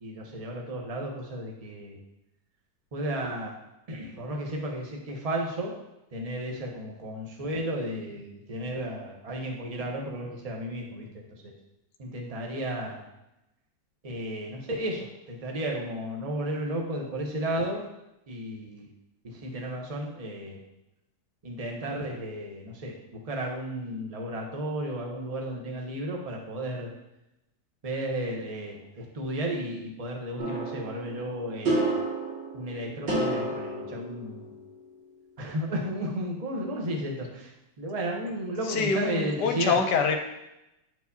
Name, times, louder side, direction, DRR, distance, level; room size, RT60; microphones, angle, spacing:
voice 1, 0.0-2.0 2.9-3.5 3.9-5.7 6.1-11.1 11.4-11.5 12.0-13.0 14.0-17.8 18.3-18.9 19.2-20.6 21.4-26.9 27.8-31.9 32.5-34.5 35.4-37.5 37.8-39.8, right 1 dB, 30° right, 0 dB, 0.7 m, -33 dB
sound 1, 30.4-34.9, right 2 dB, 85° right, 2.8 m, -31 dB
voice 2, 38.6-40.2, left 5 dB, 75° left, 5 dB, 1.1 m, -25 dB
9.0 x 4.7 x 2.7 m, 0.91 s
omnidirectional pair, 2.0 m